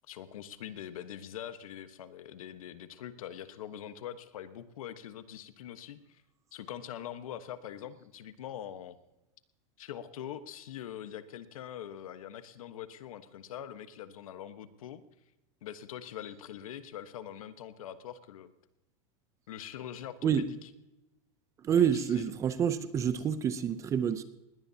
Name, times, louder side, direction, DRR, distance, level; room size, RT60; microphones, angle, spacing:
voice 1, 0.1-6.2 6.5-9.0 9.8-15.0 15.6-18.5 19.5-20.7 21.8-22.3, left 10 dB, 85° left, 1.3 m, -43 dB
voice 2, 21.6-24.2, right 8 dB, 15° right, 0.6 m, -28 dB
20.5 x 18.0 x 2.9 m
supercardioid pair, 160°, 17 cm